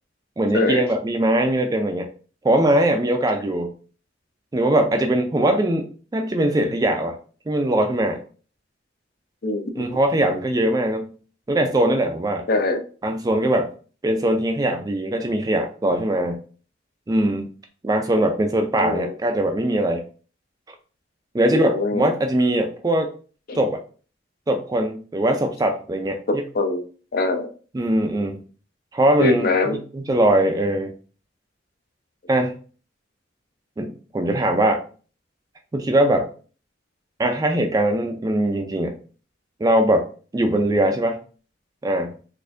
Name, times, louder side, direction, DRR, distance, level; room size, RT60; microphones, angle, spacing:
voice 1, 0.4-2.1 2.4-3.7 4.5-7.2 7.5-8.2 9.8-11.1 11.5-12.4 13.0-13.7 14.0-16.4 17.1-17.5 17.8-20.0 21.3-23.1 23.6-23.8 24.5-26.4 27.7-28.4 28.9-30.9 32.3-32.5 33.8-34.8 35.7-36.3 37.2-39.0 39.6-40.1 40.3-41.2 41.8-42.1, right 1 dB, 20° right, 4 dB, 0.3 m, -21 dB
voice 2, 12.5-12.8 18.8-19.1 21.5-22.1 23.5-23.6 26.3-26.8 27.1-27.5 29.2-29.8, left 3 dB, 55° left, 7 dB, 0.5 m, -22 dB
4.1 x 2.6 x 2.6 m, 0.39 s
head